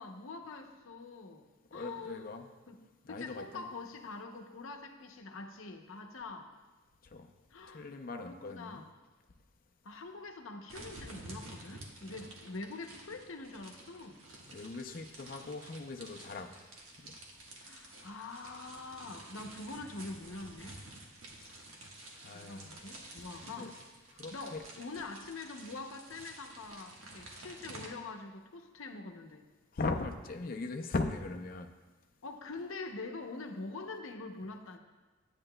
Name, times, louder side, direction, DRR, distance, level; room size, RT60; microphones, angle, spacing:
voice 1, 0.0-2.3 2.7-2.8 3.1-6.5 7.5-7.9 8.2-8.9 9.8-14.3 17.6-20.8 22.3-23.7 24.3-29.5 32.2-34.8, left 3 dB, 80° left, 4 dB, 0.7 m, -44 dB
voice 2, 1.7-2.5 3.0-3.7 7.0-7.3 7.7-8.9 14.3-16.5 17.0-17.1 22.2-22.8 23.4-23.7 24.1-24.6 29.7-31.7, left 3 dB, 45° left, 5 dB, 0.5 m, -39 dB
sound 1, 10.7-27.9, right 2 dB, 90° right, 1.3 m, -51 dB
11.0 x 8.8 x 2.2 m, 1.2 s
head